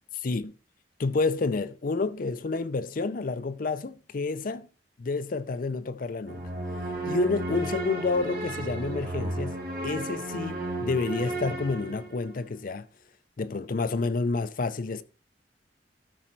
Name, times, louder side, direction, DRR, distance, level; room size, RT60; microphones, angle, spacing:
voice 1, 0.2-0.5 1.0-4.7 5.0-6.5 7.0-9.6 9.8-12.9 13.4-15.0, left 3 dB, 50° left, 0.5 m, -29 dB
sound 1, 6.3-12.3, right 2 dB, 60° right, 1.6 m, -33 dB
13.0 x 4.4 x 4.5 m
head